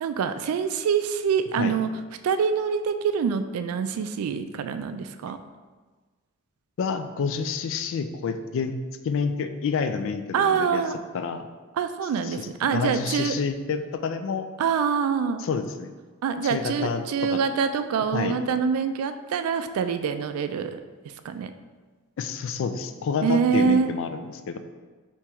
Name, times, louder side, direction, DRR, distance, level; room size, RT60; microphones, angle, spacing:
voice 1, 0.0-1.9 2.2-5.4 10.3-11.0 11.8-13.4 14.6-15.5 16.2-20.8 21.2-21.5 23.2-23.9, right 6 dB, 80° right, 11 dB, 0.3 m, -25 dB
voice 2, 6.8-8.8 9.0-10.8 11.1-11.5 12.2-12.5 12.7-14.5 15.4-15.9 16.4-17.4 18.1-18.4 22.2-24.6, left 5 dB, 60° left, 9 dB, 0.3 m, -28 dB
4.4 x 2.9 x 3.5 m, 1.4 s
head